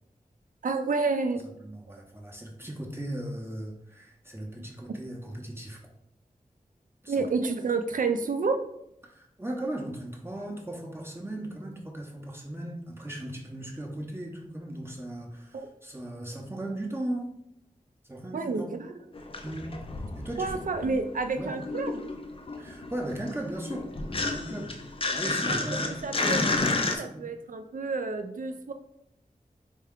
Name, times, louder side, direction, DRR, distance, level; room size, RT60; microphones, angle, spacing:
voice 1, 0.6-1.4 7.1-8.6 15.5-15.7 18.3-19.0 20.4-22.1 25.5-26.4 26.8-28.7, right 4 dB, 65° right, 7 dB, 0.4 m, -30 dB
voice 2, 1.6-5.8 7.0-7.3 9.0-17.3 18.0-18.7 19.4-21.1 21.3-21.6 22.6-24.8 25.1-26.0 27.1-27.3, right 1 dB, 15° right, -1 dB, 0.6 m, -37 dB
sound 1, 19.1-21.1 21.3-27.0, left 3 dB, 40° left, 0.4 m, -31 dB
4.3 x 2.2 x 3.6 m, 0.76 s
wide cardioid pair, 75°, 15 cm